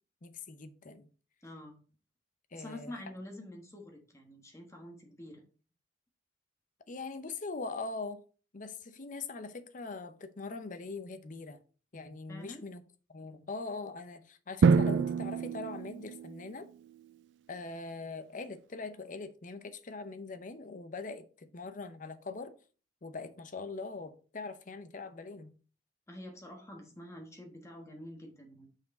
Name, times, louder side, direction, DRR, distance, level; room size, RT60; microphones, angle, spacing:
voice 1, 0.2-1.1 2.5-2.9 6.9-8.2 8.5-11.6 11.9-12.8 13.1-16.7 17.5-22.5 23.0-25.5, left 3 dB, 45° left, 0.7 m, -42 dB
voice 2, 1.4-1.8 2.5-5.4 12.3-12.6 13.2-13.5 26.1-28.7, left 1 dB, 15° left, 1.3 m, -47 dB
Drum, 14.6-16.5, right 5 dB, 85° right, 0.4 m, -27 dB
6.1 x 4.6 x 4.2 m
head